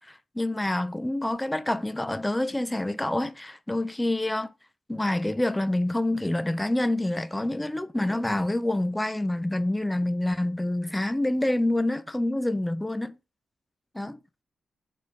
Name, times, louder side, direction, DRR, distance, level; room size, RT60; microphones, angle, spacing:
voice 1, 0.1-4.5 4.9-13.2 13.9-14.2, left 1 dB, 10° left, 0.4 m, -27 dB
7.3 x 4.1 x 5.2 m
wide cardioid pair, 165°, 0 cm